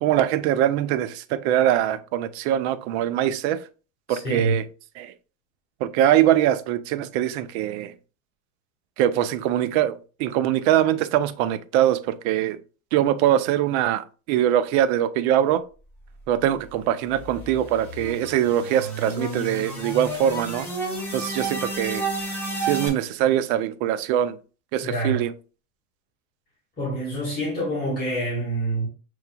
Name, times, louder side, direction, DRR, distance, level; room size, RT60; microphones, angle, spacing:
voice 1, 0.0-3.6 4.1-4.6 5.0-5.1 5.8-7.9 9.0-12.6 12.9-15.6 16.3-20.7 21.1-22.0 22.6-24.4 24.7-25.3, right 11 dB, 60° right, 0.6 m, -22 dB
voice 2, 4.1-4.6 24.8-25.3 26.8-28.9, right 1 dB, 25° left, 1.9 m, -26 dB
sound 1, 16.5-22.9, right 2 dB, 5° left, 1.4 m, -32 dB
6.7 x 3.1 x 2.3 m
supercardioid pair, 155°, 36 cm